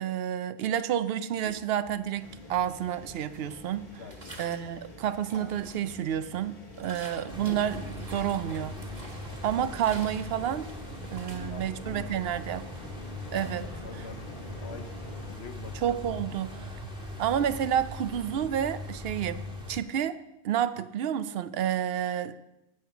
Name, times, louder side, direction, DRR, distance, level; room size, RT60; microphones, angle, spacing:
voice 1, 0.0-4.0 4.4-8.8 9.4-10.7 11.1-12.7 13.3-13.7 13.9-14.1 15.7-16.7 17.2-19.4 19.7-20.2 20.4-22.4, right 10 dB, 70° right, 13 dB, 0.8 m, -30 dB
sound 1, 1.4-2.2 2.5-4.8 5.1-6.0 6.4-12.1, right 1 dB, 35° right, 1.6 m, -48 dB
sound 2, 2.2-15.3, left 2 dB, 40° left, 2.0 m, -47 dB
voice 2, 4.0-4.5 11.1-13.0 13.6-14.3 14.6-15.8 16.4-16.5, left 5 dB, 75° left, 8 dB, 1.1 m, -46 dB
sound 3, 7.3-19.8, left 1 dB, 5° right, 1.5 m, -41 dB
8.9 x 6.4 x 5.8 m, 0.90 s
omnidirectional pair, 1.1 m